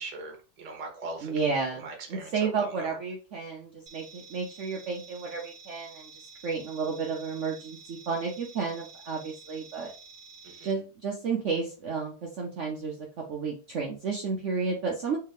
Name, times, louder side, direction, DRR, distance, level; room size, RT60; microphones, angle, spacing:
voice 1, 0.0-1.3 1.8-3.0 10.4-10.8, right 3 dB, 35° right, 2 dB, 0.7 m, -40 dB
voice 2, 1.2-9.9 10.6-13.0 13.3-15.2, right 5 dB, 80° right, 0 dB, 0.6 m, -32 dB
sound 1, 3.9-10.7, right 5 dB, 65° right, 1.1 m, -50 dB
3.5 x 3.2 x 3.3 m, 0.36 s
omnidirectional pair, 2.0 m